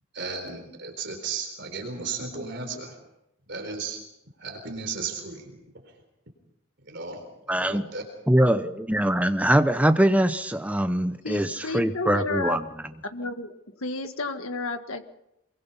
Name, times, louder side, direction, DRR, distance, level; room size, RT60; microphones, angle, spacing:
voice 1, 0.1-3.0 3.5-4.0 4.4-6.0 6.8-8.0, right 4 dB, 55° right, 4 dB, 4.0 m, -35 dB
voice 2, 7.5-7.9 8.3-12.6, right 1 dB, 5° right, 9 dB, 0.9 m, -22 dB
voice 3, 11.2-12.6 13.1-13.5 13.8-15.0, left 3 dB, 80° left, 7 dB, 1.7 m, -31 dB
24.0 x 22.0 x 5.7 m, 0.86 s
head